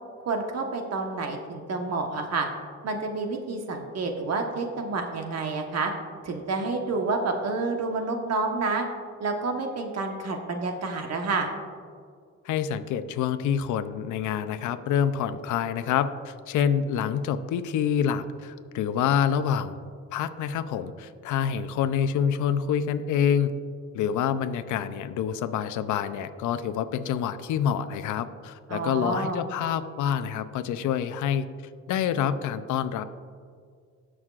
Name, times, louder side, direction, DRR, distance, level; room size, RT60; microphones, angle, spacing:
voice 1, 0.3-2.5 2.8-5.9 6.2-8.9 9.2-11.5 28.7-29.4, right 3 dB, 55° right, 3 dB, 1.2 m, -29 dB
voice 2, 12.4-19.8 20.1-23.5 23.9-31.5 31.9-33.0, left 8 dB, 80° left, 11 dB, 0.6 m, -27 dB
18.5 x 6.3 x 2.4 m, 2.1 s
cardioid pair, 90°, 30 cm